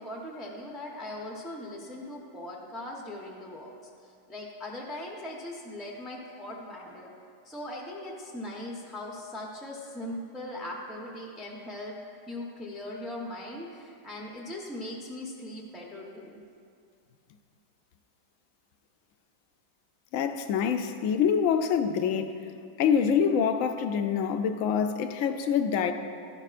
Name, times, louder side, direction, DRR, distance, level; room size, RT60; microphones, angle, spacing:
voice 1, 0.0-3.7 4.3-7.1 7.4-12.0 12.3-16.4, left 1 dB, ahead, -2 dB, 0.4 m, -39 dB
voice 2, 20.1-22.3 22.8-25.9, left 7 dB, 70° left, 7 dB, 0.8 m, -25 dB
13.0 x 11.0 x 2.5 m, 2.3 s
omnidirectional pair, 1.8 m